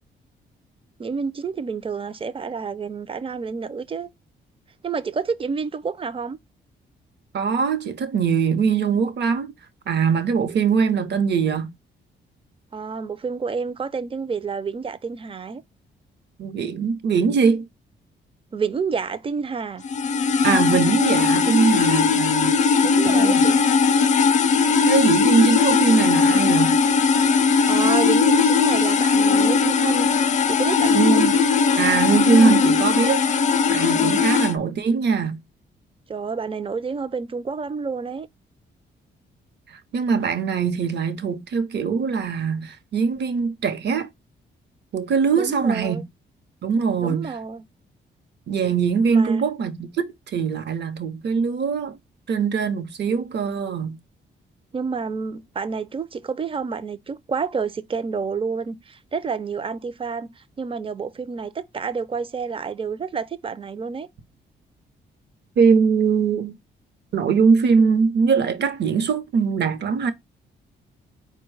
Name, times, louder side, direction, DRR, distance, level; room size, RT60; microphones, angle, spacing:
voice 1, 1.0-4.1 4.8-6.4 12.7-15.6 18.5-19.8 22.8-23.6 27.7-30.1 30.5-31.3 33.9-34.4 36.1-38.3 45.3-46.0 47.0-47.6 49.1-49.4 54.7-64.1, right 5 dB, 30° right, 0.5 m, -29 dB
voice 2, 7.3-9.5 9.9-11.7 16.4-17.6 20.4-22.6 23.0-23.5 24.8-26.8 30.9-31.4 31.8-33.3 33.7-35.4 39.7-44.1 44.9-46.0 46.6-47.4 48.5-52.0 52.3-54.0 65.6-66.6 67.1-70.1, right 5 dB, 65° right, 0.8 m, -21 dB
sound 1, 19.8-34.5, left 5 dB, 40° left, 0.5 m, -19 dB
4.3 x 2.2 x 4.7 m
cardioid pair, 80°, 19 cm